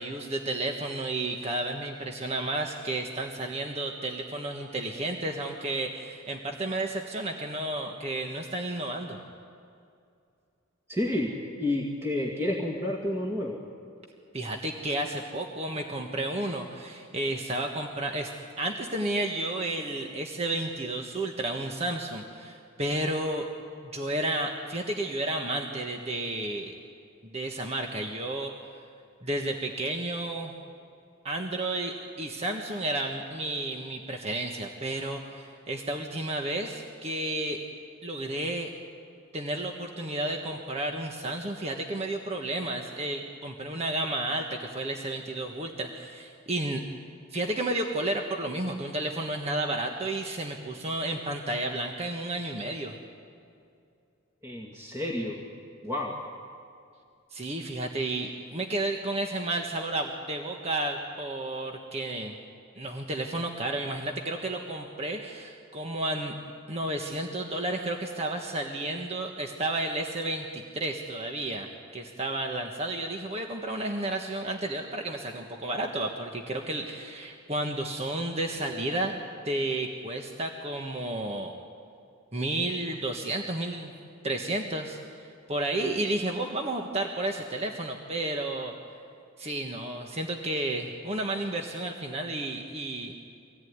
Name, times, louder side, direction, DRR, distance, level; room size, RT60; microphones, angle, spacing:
voice 1, 0.0-9.2 14.3-18.3 18.6-23.5 23.9-26.7 27.2-28.5 29.2-30.5 31.2-37.6 38.0-38.7 39.3-46.8 47.3-53.0 57.3-62.3 62.8-66.3 66.7-71.7 71.9-81.5 82.3-83.9 84.2-88.7 89.4-93.2, right 1 dB, 30° right, 2 dB, 1.4 m, -32 dB
voice 2, 10.9-13.6 54.4-55.4 55.8-56.2, left 1 dB, 15° right, -2 dB, 2.1 m, -30 dB
24.5 x 18.0 x 9.6 m, 2.4 s
head